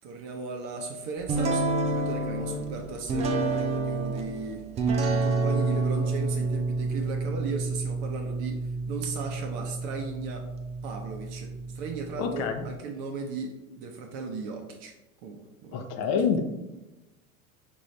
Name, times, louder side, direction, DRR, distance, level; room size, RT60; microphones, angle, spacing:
voice 1, 0.0-4.6 5.2-10.5 10.8-14.9 15.2-15.7, right 4 dB, 45° right, 2 dB, 0.7 m, -36 dB
sound 1, 1.3-12.7, right 3 dB, 15° right, 0.3 m, -29 dB
voice 2, 12.2-12.7 15.7-16.4, left 6 dB, 40° left, 6 dB, 0.6 m, -27 dB
5.3 x 2.6 x 3.2 m, 1.0 s
hypercardioid pair, 90°, 42 cm